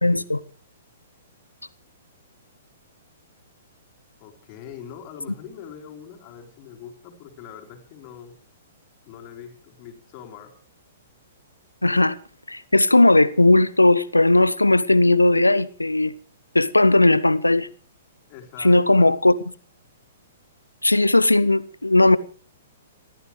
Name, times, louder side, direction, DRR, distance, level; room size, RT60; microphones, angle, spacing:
voice 1, 0.0-0.4 11.8-12.1 12.5-16.1 16.5-17.7 18.6-19.4 20.8-22.2, left 2 dB, 85° left, 0.8 m, -17 dB
voice 2, 4.2-8.4 9.0-10.5 18.3-19.1, left 8 dB, 35° left, 4.0 m, -42 dB
27.5 x 14.0 x 3.2 m
figure-of-eight pair, 115°, 0 cm